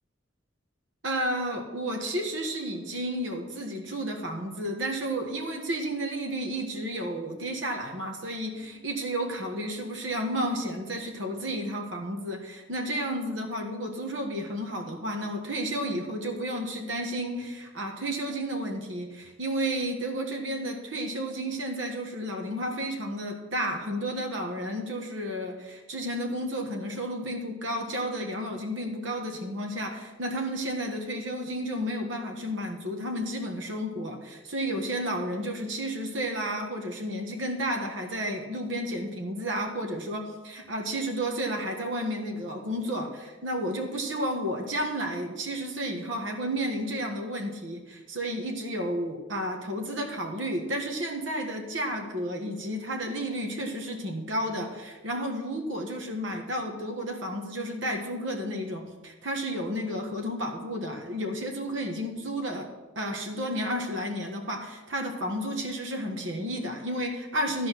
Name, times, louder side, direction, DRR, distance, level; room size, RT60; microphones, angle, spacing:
voice 1, 1.0-62.7 62.9-67.7, equal, 85° right, 2 dB, 1.5 m, -32 dB
12.0 x 5.0 x 6.1 m, 1.2 s
head